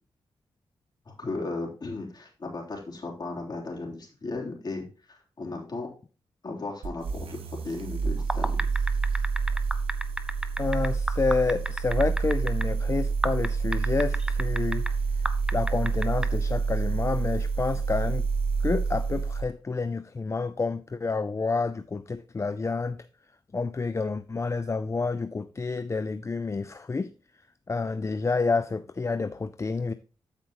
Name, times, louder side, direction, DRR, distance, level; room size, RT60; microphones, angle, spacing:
voice 1, 1.0-5.9 6.4-8.7, left 3 dB, 45° left, 3.4 m, -36 dB
sound 1, 6.8-19.5, right 5 dB, 75° right, 1.0 m, -28 dB
sound 2, 8.2-12.7 13.2-14.9 15.3-16.3, right 1 dB, 10° right, 0.7 m, -31 dB
voice 2, 10.6-14.8 15.5-18.3 18.6-23.0 23.5-27.1 27.7-29.9, left 4 dB, 30° left, 0.4 m, -29 dB
13.5 x 5.1 x 2.9 m
cardioid pair, 65°, 10 cm